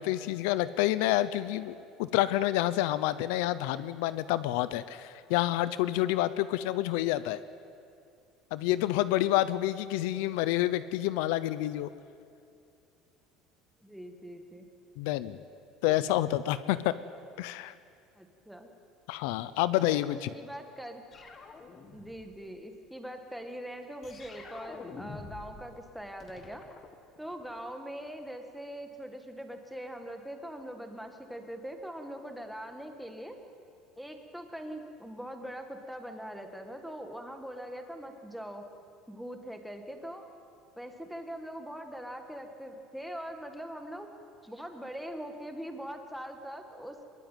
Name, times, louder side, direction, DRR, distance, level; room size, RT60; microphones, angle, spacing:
voice 1, 0.0-7.4 8.5-11.9 15.0-15.4 15.8-16.9 17.4-17.7 19.1-20.3, left 14 dB, 80° left, 15 dB, 0.8 m, -28 dB
voice 2, 13.8-14.7 15.9-16.0 18.1-18.7 20.3-21.0 21.9-26.6 27.2-33.4 34.0-38.6 39.1-40.2 40.8-44.1 44.4-47.0, equal, ahead, 4 dB, 1.8 m, -42 dB
sound 1, 21.1-22.4 24.0-25.7 25.9-27.6, left 4 dB, 25° left, 1.8 m, -47 dB
23.5 x 21.5 x 9.2 m, 2.5 s
cardioid pair, 175°, 0 cm